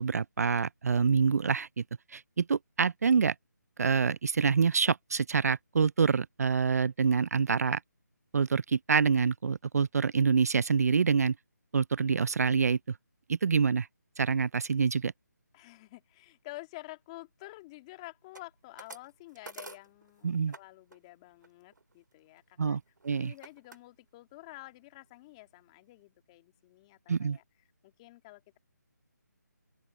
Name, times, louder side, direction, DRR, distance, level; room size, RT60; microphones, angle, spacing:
voice 1, 0.0-1.8 2.1-3.3 3.8-7.8 8.3-11.3 11.7-12.8 13.3-13.9 14.2-15.1 20.2-20.5 22.6-23.3 27.1-27.4, right 5 dB, 55° right, 0.4 m, -26 dB
voice 2, 15.5-22.8 23.2-27.4 27.8-28.6, left 20 dB, 20° left, 2.0 m, -49 dB
sound 1, 18.3-20.6 20.9-21.1 21.4-23.8 24.3-24.7 25.1-25.2 25.4-26.0, right 3 dB, 85° right, 4.1 m, -50 dB
open air
figure-of-eight pair, 160°, 10 cm